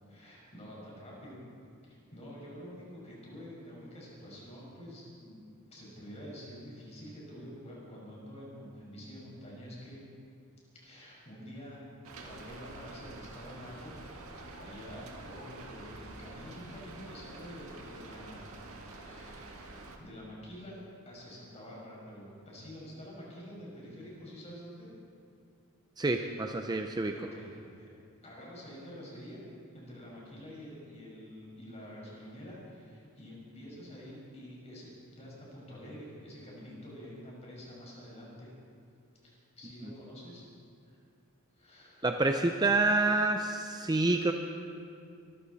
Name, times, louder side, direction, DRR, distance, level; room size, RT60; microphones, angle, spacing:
voice 1, 0.1-1.4 1.8-5.4 5.7-10.0 10.8-11.8 12.2-13.9 14.2-18.5 18.9-24.9 27.1-27.9 28.2-29.4 29.7-38.5 39.2-40.4 40.8-41.0 41.5-42.1, equal, 30° left, -4 dB, 5.2 m, -48 dB
Rain, 12.0-20.0, right 2 dB, 80° right, 1.7 m, -47 dB
voice 2, 26.0-27.1 42.0-44.3, right 2 dB, 20° right, 5 dB, 0.5 m, -27 dB
23.5 x 14.0 x 4.1 m, 2.4 s
head